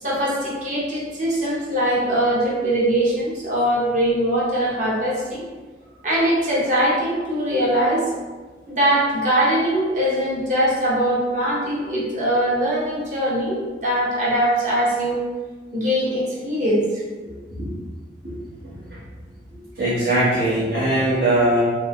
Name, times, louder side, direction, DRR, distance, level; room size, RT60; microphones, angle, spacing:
voice 1, 0.0-5.5 6.0-8.0 8.7-15.2 15.7-16.8, right 1 dB, 45° right, -7 dB, 1.1 m, -21 dB
voice 2, 18.6-19.0 19.5-21.6, right 1 dB, 70° right, -13 dB, 1.2 m, -21 dB
3.5 x 2.2 x 3.5 m, 1.3 s
head